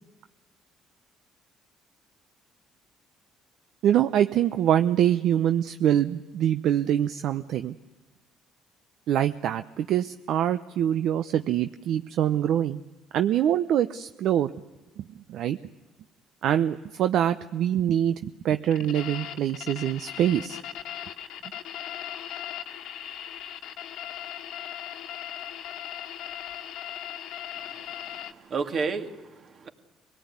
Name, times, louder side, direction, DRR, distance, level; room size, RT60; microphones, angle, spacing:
voice 1, 3.8-7.8 9.1-12.8 13.1-14.5 15.0-15.6 16.4-20.6, right 10 dB, 70° right, 10 dB, 0.7 m, -24 dB
sound 1, 18.7-28.3, left 11 dB, 75° left, 1.5 m, -38 dB
voice 2, 27.5-29.7, right 4 dB, 50° right, 6 dB, 2.4 m, -33 dB
25.0 x 18.0 x 9.7 m, 1.2 s
cardioid pair, 90°, 0 cm